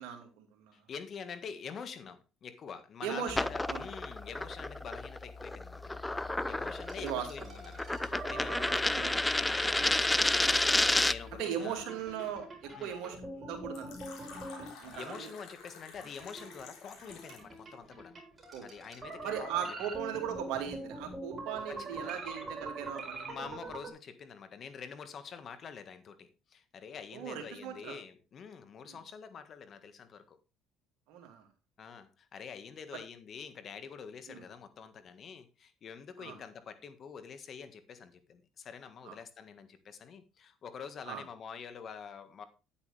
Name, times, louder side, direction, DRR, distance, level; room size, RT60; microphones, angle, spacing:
voice 1, 0.0-0.8 3.0-3.8 7.0-7.5 8.9-9.1 11.4-15.3 18.5-18.7 19.2-23.3 27.1-28.0 28.9-29.0 31.1-31.5 34.3-34.4 36.2-36.4 39.0-39.2 41.1-41.2, right 8 dB, 75° right, 4 dB, 2.4 m, -39 dB
voice 2, 0.7-12.0 12.8-12.9 14.9-18.2 18.6-19.7 21.7-22.2 23.2-30.4 31.8-42.5, left 6 dB, 50° left, 10 dB, 1.6 m, -46 dB
sound 1, 3.3-11.3, left 2 dB, 10° left, 0.5 m, -30 dB
sound 2, 6.7-9.8 10.3-15.5 15.9-23.9, right 2 dB, 25° right, 4.6 m, -45 dB
Fill (with liquid), 13.7-17.6, left 5 dB, 70° left, 4.0 m, -51 dB
9.8 x 8.6 x 3.4 m, 0.29 s
supercardioid pair, 85°, 0 cm